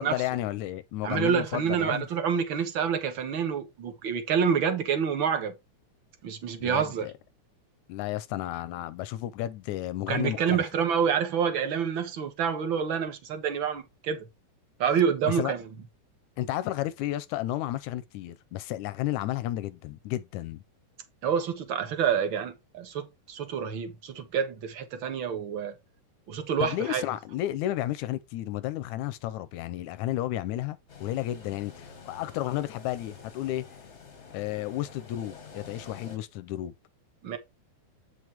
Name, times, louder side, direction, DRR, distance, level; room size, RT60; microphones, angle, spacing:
voice 1, 0.0-2.1 6.6-7.1 7.9-10.6 15.2-15.5 16.4-20.6 26.6-33.7 34.3-36.7, left 14 dB, 80° left, 1.7 m, -32 dB
voice 2, 1.0-5.5 6.2-7.1 10.1-14.3 14.8-15.6 21.2-25.7 26.3-27.0 37.2-37.4, right 7 dB, 55° right, 1.5 m, -28 dB
sound 1, 30.9-36.2, left 5 dB, 55° left, 0.7 m, -48 dB
8.2 x 6.2 x 3.4 m
omnidirectional pair, 3.7 m